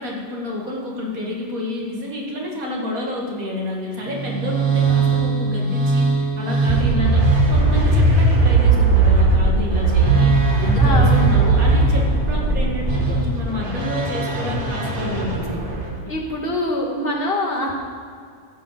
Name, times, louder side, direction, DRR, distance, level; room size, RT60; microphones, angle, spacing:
voice 1, 0.0-15.6 16.0-16.2, left 2 dB, 70° right, -2 dB, 2.7 m, -29 dB
sound 1, 4.1-16.0, right 3 dB, 35° right, 1.7 m, -18 dB
voice 2, 10.8-11.3 16.1-17.7, left 1 dB, 40° left, -1 dB, 2.0 m, -24 dB
14.0 x 5.7 x 7.7 m, 2.2 s
omnidirectional pair, 1.5 m